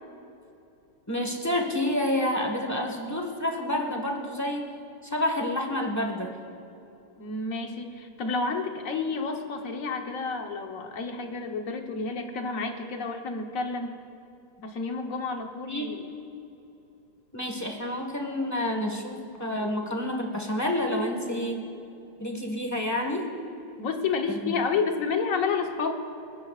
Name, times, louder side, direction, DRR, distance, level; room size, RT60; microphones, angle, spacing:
voice 1, 1.1-4.7 5.0-6.3 15.7-15.9 17.3-21.6 22.2-23.3 24.3-24.5, left 1 dB, 10° left, 1 dB, 1.3 m, -29 dB
voice 2, 7.2-14.0 14.6-16.1 23.8-25.9, left 4 dB, 50° left, 4 dB, 1.3 m, -30 dB
30.0 x 13.5 x 2.4 m, 2.8 s
omnidirectional pair, 2.1 m